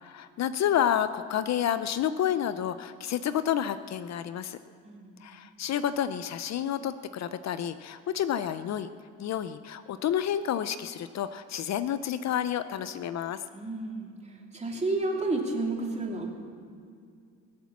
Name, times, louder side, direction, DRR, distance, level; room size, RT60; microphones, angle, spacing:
voice 1, 0.0-4.6 5.2-8.9 9.2-13.4, left 10 dB, 60° left, 12 dB, 0.6 m, -30 dB
voice 2, 4.8-5.2 13.5-16.3, right 2 dB, 20° right, -1 dB, 3.0 m, -31 dB
21.0 x 7.4 x 7.2 m, 2.2 s
cardioid pair, 90°, 30 cm